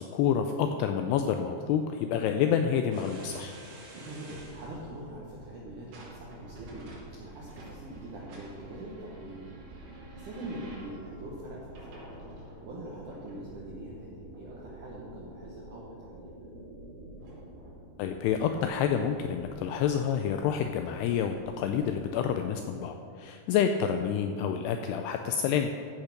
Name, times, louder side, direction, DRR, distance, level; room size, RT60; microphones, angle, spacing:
voice 1, 0.0-3.5 18.0-25.7, left 8 dB, 85° left, 6 dB, 2.4 m, -28 dB
sound 1, 2.9-22.6, right 1 dB, 85° right, 4.8 m, -48 dB
voice 2, 3.9-9.5 9.8-12.0 12.4-16.5, right 1 dB, 65° right, -4 dB, 2.2 m, -43 dB
14.0 x 6.5 x 5.9 m, 2.3 s
omnidirectional pair, 5.1 m